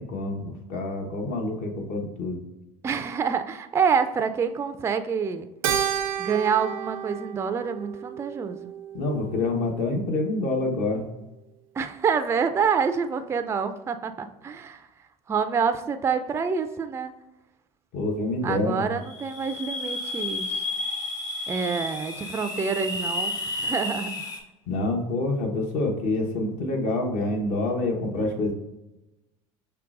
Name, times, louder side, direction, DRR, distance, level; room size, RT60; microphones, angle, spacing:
voice 1, 0.0-2.4 8.9-11.1 17.9-18.9 24.7-28.5, left 2 dB, 55° left, 2 dB, 1.1 m, -27 dB
voice 2, 2.8-5.5 6.2-8.7 11.8-14.9 15.3-17.1 18.4-20.7 21.5-24.2, right 6 dB, 15° right, 9 dB, 0.3 m, -27 dB
Keyboard (musical), 5.6-10.2, right 9 dB, 80° right, 0.5 m, -32 dB
sound 1, 19.0-24.4, left 2 dB, 20° left, 0.8 m, -31 dB
5.8 x 3.2 x 2.5 m, 1.0 s
hypercardioid pair, 85°, 17 cm